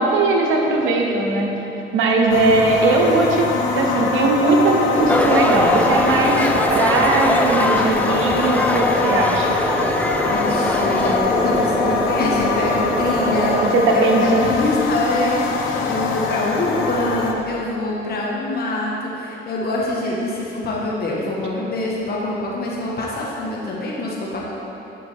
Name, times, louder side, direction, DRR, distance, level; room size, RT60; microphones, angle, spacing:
voice 1, 0.0-1.5 1.9-3.5 3.8-9.5 13.7-14.5, right 3 dB, 85° right, 0 dB, 1.1 m, -19 dB
sound 1, 2.3-17.3, left 4 dB, 80° left, 0.8 m, -23 dB
sound 2, 5.0-13.7, right 1 dB, 10° right, 0.8 m, -25 dB
sound 3, 5.1-11.2, left 2 dB, 5° left, 0.4 m, -23 dB
voice 2, 10.3-24.4, left 1 dB, 50° left, -4 dB, 1.4 m, -25 dB
9.5 x 6.1 x 3.5 m, 3.0 s
cardioid pair, 90°, 20 cm